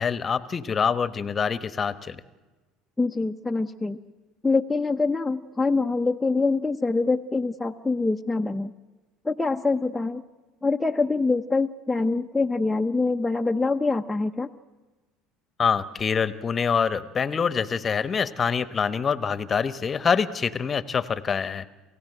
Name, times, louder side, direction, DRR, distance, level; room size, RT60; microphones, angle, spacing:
voice 1, 0.0-2.2 15.6-21.7, left 6 dB, 35° left, 14 dB, 1.0 m, -25 dB
voice 2, 3.0-4.0 4.4-8.7 9.2-10.2 10.6-14.5, left 3 dB, 10° left, 3 dB, 0.7 m, -24 dB
28.5 x 16.0 x 7.9 m, 1.2 s
hypercardioid pair, 75°, 0 cm